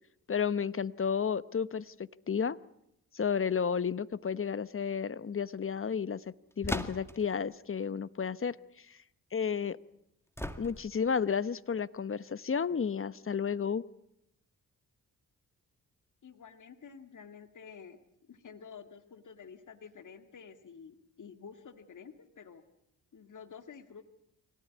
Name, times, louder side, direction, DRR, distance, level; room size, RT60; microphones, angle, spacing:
voice 1, 0.3-2.6 3.1-6.2 6.6-9.0 9.3-9.8 10.6-13.8, left 6 dB, 35° left, 17 dB, 1.0 m, -32 dB
sound 1, 6.6-7.3 10.4-11.1, left 1 dB, 5° left, 2.1 m, -37 dB
voice 2, 16.2-22.6 23.1-24.0, left 6 dB, 55° left, 8 dB, 2.0 m, -50 dB
25.0 x 18.0 x 9.4 m, 0.81 s
cardioid pair, 60°, 36 cm